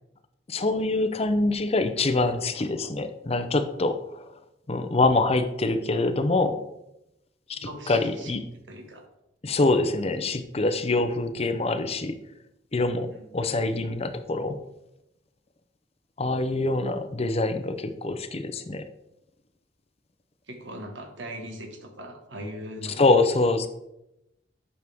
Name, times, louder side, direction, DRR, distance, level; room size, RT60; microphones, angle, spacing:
voice 1, 0.5-4.0 4.7-6.6 7.5-7.6 7.9-8.4 9.4-12.1 12.7-14.6 16.2-18.8 23.0-23.7, left 2 dB, 35° left, 10 dB, 0.6 m, -25 dB
voice 2, 7.6-8.4 8.7-9.0 13.1-13.4 20.5-23.1, right 1 dB, 85° right, 3 dB, 1.7 m, -39 dB
9.5 x 6.6 x 3.6 m, 0.88 s
head